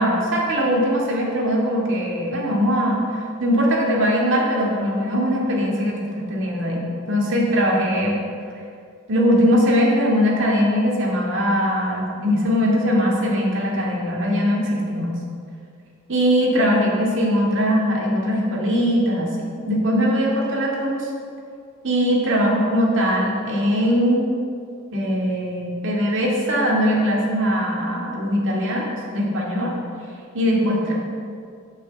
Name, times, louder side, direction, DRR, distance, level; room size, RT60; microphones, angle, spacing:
voice 1, 0.0-8.2 9.1-15.1 16.1-21.1 21.8-24.3 24.9-28.9 29.1-29.7 30.3-30.9, equal, 60° right, -3 dB, 2.2 m, -21 dB
8.0 x 6.2 x 7.6 m, 2.3 s
head